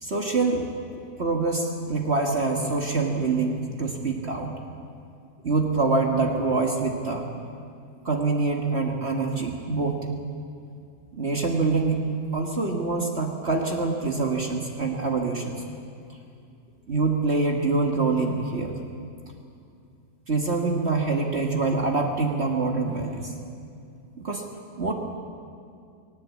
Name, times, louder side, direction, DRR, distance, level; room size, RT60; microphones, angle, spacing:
voice 1, 0.0-4.5 5.4-7.3 8.1-10.0 11.1-15.6 16.9-18.7 20.3-23.3 24.2-24.5 24.8-24.9, right 3 dB, 40° right, 2 dB, 1.9 m, -25 dB
19.5 x 18.5 x 8.4 m, 2.5 s
omnidirectional pair, 1.8 m